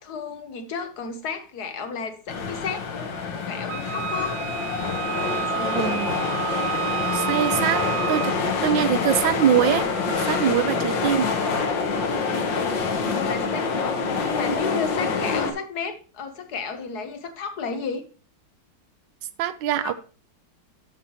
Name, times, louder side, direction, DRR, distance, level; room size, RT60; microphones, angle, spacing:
voice 1, 0.0-4.4 5.2-6.0 12.4-18.0 19.8-19.9, left 5 dB, 65° left, 1.5 m, -33 dB
sound 1, 2.3-15.5, left 4 dB, 85° left, 2.0 m, -26 dB
Wind instrument woodwind instrument, 3.7-8.4, right 13 dB, 65° right, 1.3 m, -30 dB
voice 2, 5.7-6.2 7.1-7.8 8.1-8.3 8.6-11.3 19.4-19.9, right 10 dB, 85° right, 1.3 m, -23 dB
12.5 x 5.5 x 3.0 m
omnidirectional pair, 1.9 m